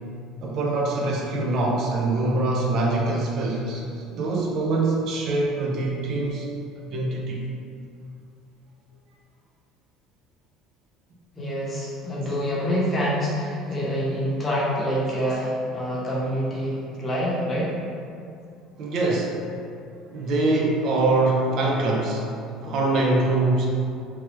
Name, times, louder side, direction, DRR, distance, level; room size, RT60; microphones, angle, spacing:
voice 1, 0.4-6.5 6.9-7.5 18.8-19.3 20.1-22.3 22.6-23.7, right 2 dB, 50° right, -2 dB, 0.4 m, -24 dB
voice 2, 11.3-17.7, equal, 20° left, -7 dB, 0.7 m, -26 dB
2.9 x 2.2 x 3.0 m, 2.5 s
cardioid pair, 155°, 0 cm